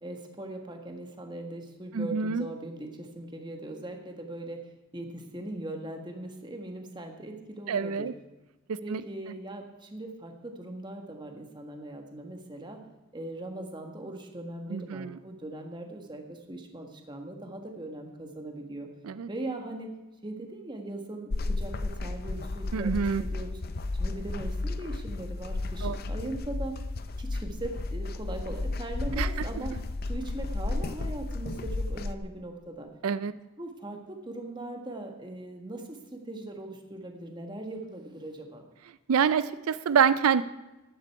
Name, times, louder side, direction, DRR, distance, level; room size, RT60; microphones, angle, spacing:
voice 1, 0.0-8.1 8.8-12.8 13.1-18.9 19.3-19.9 20.2-23.6 23.9-26.8 27.2-29.8 30.0-32.9 33.6-38.7, right 1 dB, 20° right, 4 dB, 1.4 m, -40 dB
voice 2, 1.9-2.4 7.7-8.1 8.7-9.0 14.7-15.1 19.2-19.3 22.7-23.2 25.8-26.0 29.2-29.3 33.0-33.3 39.1-40.4, right 6 dB, 90° right, 15 dB, 0.4 m, -26 dB
sound 1, 21.3-32.2, left 2 dB, 45° left, 0.6 m, -33 dB
13.5 x 10.5 x 4.6 m, 1.1 s
head